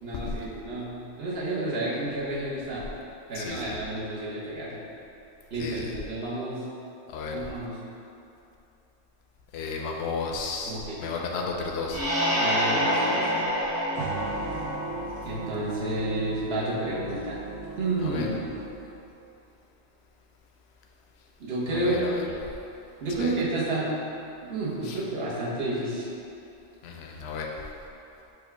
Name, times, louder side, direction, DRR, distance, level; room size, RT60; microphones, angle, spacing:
voice 1, 0.0-2.8 3.3-4.8 5.5-6.6 7.3-7.7 10.7-10.9 12.4-13.4 15.2-17.4 17.8-18.5 21.4-22.0 23.0-23.9 24.5-26.1, right 2 dB, 55° right, -8 dB, 1.2 m, -30 dB
voice 2, 3.3-3.8 5.5-6.0 7.1-7.4 9.5-12.0 18.0-18.3 21.7-22.3 23.2-23.3 24.8-25.0 26.8-27.5, left 4 dB, 65° left, 0 dB, 0.8 m, -33 dB
sound 1, 11.9-15.5, equal, 15° right, 0.5 m, -27 dB
sound 2, 13.9-19.1, right 3 dB, 75° right, 0.9 m, -37 dB
5.0 x 2.4 x 4.5 m, 2.8 s
omnidirectional pair, 1.3 m